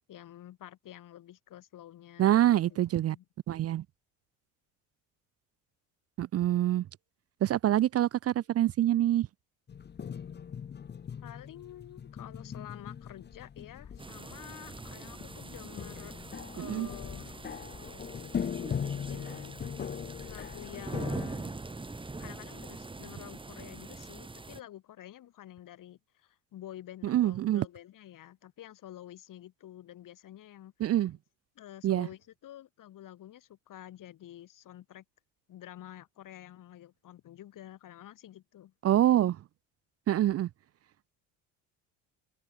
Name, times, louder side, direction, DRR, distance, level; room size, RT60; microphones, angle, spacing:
voice 1, 0.1-3.2 11.2-16.1 16.5-17.3 18.8-19.5 20.3-21.6 22.2-31.0 31.6-35.0 35.5-38.7, left 12 dB, 60° left, 5.7 m, -49 dB
voice 2, 2.2-3.2 3.5-3.8 6.2-6.9 7.4-9.3 16.6-16.9 27.0-27.7 30.8-31.1 31.8-32.1 38.8-39.4 40.1-40.5, right 12 dB, 40° right, 0.6 m, -25 dB
sound 1, 9.7-21.3, left 7 dB, 30° left, 0.9 m, -40 dB
sound 2, 14.0-24.6, right 3 dB, 15° right, 1.6 m, -43 dB
sound 3, 14.6-22.7, left 2 dB, 10° left, 3.0 m, -55 dB
hypercardioid pair, 70°, 37 cm